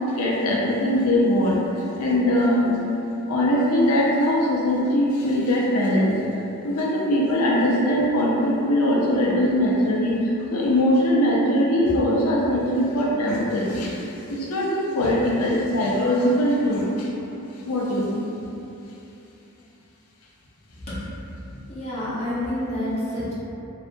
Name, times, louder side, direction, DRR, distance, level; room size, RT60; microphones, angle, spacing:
voice 1, 0.1-1.7 2.0-2.8 3.3-6.2 6.6-17.1 17.7-18.3, left 1 dB, 80° left, -4 dB, 0.5 m, -21 dB
voice 2, 21.7-23.3, left 1 dB, 30° left, -9 dB, 0.6 m, -28 dB
2.7 x 2.3 x 2.5 m, 2.9 s
head